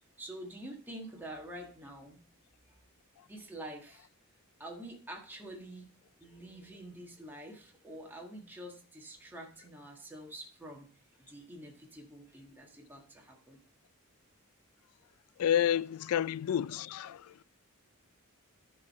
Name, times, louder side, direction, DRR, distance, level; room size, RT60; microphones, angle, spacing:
voice 1, 0.2-2.2 2.7-2.8 3.3-4.1 4.6-5.9 6.2-10.9 11.1-13.6, right 1 dB, 10° right, 1.6 m, -47 dB
voice 2, 15.4-17.3, left 10 dB, 80° left, 0.3 m, -30 dB
12.5 x 4.8 x 4.2 m
head